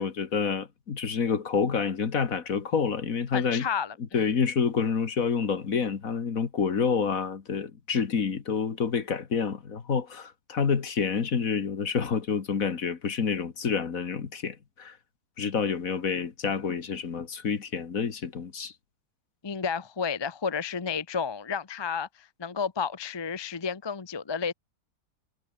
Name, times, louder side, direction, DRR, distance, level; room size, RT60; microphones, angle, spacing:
voice 1, 0.0-3.7 4.1-14.9 15.4-18.7, left 6 dB, 50° left, 2.0 m, -28 dB
voice 2, 3.3-4.2 19.4-24.5, left 6 dB, 35° left, 0.4 m, -31 dB
omnidirectional pair, 1.9 m